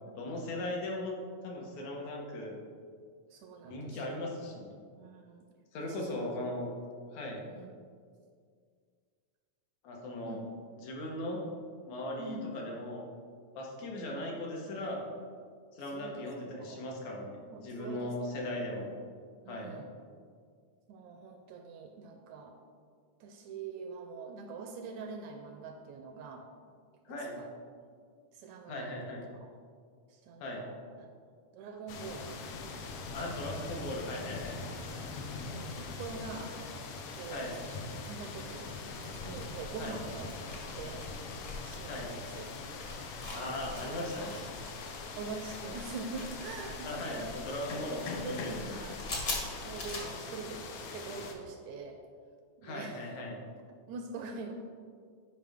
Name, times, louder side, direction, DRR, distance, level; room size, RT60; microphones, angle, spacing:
voice 1, 0.2-1.2 1.4-2.6 3.7-4.8 5.7-6.7 7.1-7.4 9.8-10.4 10.8-11.4 11.8-13.1 13.5-15.1 15.8-18.9 19.5-19.8 27.1-27.4 28.7-29.3 30.4-30.7 33.1-34.6 37.3-37.6 39.8-40.0 41.9-42.1 43.3-44.5 46.8-48.8 52.6-53.4, left 1 dB, 70° left, -1 dB, 2.3 m, -38 dB
voice 2, 3.3-4.2 5.0-5.5 5.8-6.3 7.5-7.7 10.3-10.4 12.2-12.5 15.9-16.3 16.6-16.8 17.4-18.2 19.0-19.1 19.4-19.9 20.9-22.6 23.2-26.5 27.1-27.5 28.3-29.0 30.1-31.1 31.5-32.6 35.0-35.2 35.5-36.6 37.1-38.7 39.1-41.1 41.6-42.4 43.3-44.0 45.2-47.4 47.8-48.4 48.7-49.0 49.6-52.0 52.6-53.0 53.4-54.5, right 4 dB, 80° right, 4 dB, 1.8 m, -44 dB
sound 1, 31.9-51.3, left 4 dB, 90° left, 1.2 m, -42 dB
sound 2, 38.5-50.0, left 2 dB, 40° left, 1.3 m, -44 dB
11.0 x 5.1 x 3.5 m, 2.1 s
omnidirectional pair, 3.6 m